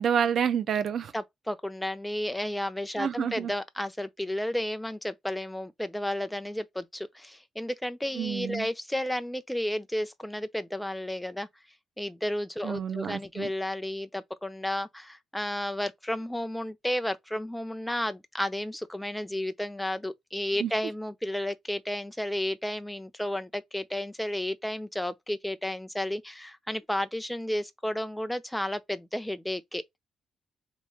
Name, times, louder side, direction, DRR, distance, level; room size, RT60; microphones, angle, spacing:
voice 1, 0.0-1.1 3.0-3.5 8.2-8.7 12.6-13.5 20.6-20.7, right 7 dB, 60° right, 0.8 m, -28 dB
voice 2, 1.1-11.5 12.0-29.8, left 1 dB, 5° left, 0.7 m, -32 dB
3.5 x 3.1 x 3.5 m
cardioid pair, 90°, 0 cm